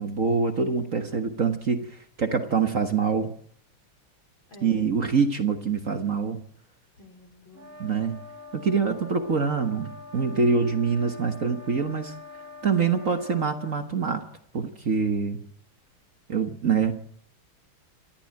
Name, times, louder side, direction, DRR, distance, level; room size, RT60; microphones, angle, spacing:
voice 1, 0.0-1.9 2.2-3.3 4.6-6.4 7.8-8.2 8.5-12.1 12.6-14.2 14.5-15.4 16.3-16.9, right 5 dB, 45° right, 7 dB, 1.6 m, -25 dB
voice 2, 1.0-1.4 4.5-5.0 6.9-7.8 10.5-11.1, left 3 dB, 70° left, 3 dB, 5.6 m, -49 dB
sound 1, 7.5-13.8, left 4 dB, 65° right, 2.9 m, -44 dB
28.5 x 13.5 x 8.9 m, 0.67 s
omnidirectional pair, 2.2 m